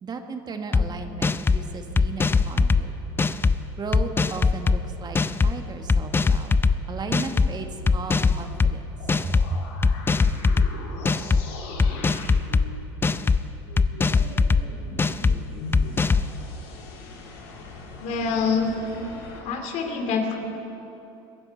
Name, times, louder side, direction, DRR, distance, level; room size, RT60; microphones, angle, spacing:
voice 1, 0.0-2.9 3.8-6.5 6.9-8.8 9.2-9.7, right 3 dB, 30° right, 5 dB, 1.5 m, -35 dB
sound 1, 0.7-0.8 1.2-1.6 2.0-2.8 3.2-3.5 3.9-4.8 5.1-5.5 5.9-6.7 7.1-7.5 7.9-8.7 9.1-9.5 9.8-10.7 11.0-11.4 11.8-12.6 13.0-13.4 13.8-14.6 15.0-15.3 15.7-16.3, left 4 dB, 15° left, 0.5 m, -20 dB
sound 2, 8.9-19.4, left 3 dB, 80° left, 2.7 m, -41 dB
voice 2, 18.0-18.7 19.4-20.4, left 5 dB, 60° left, 4 dB, 2.4 m, -25 dB
21.5 x 9.9 x 5.6 m, 2.9 s
supercardioid pair, 90°, 14 cm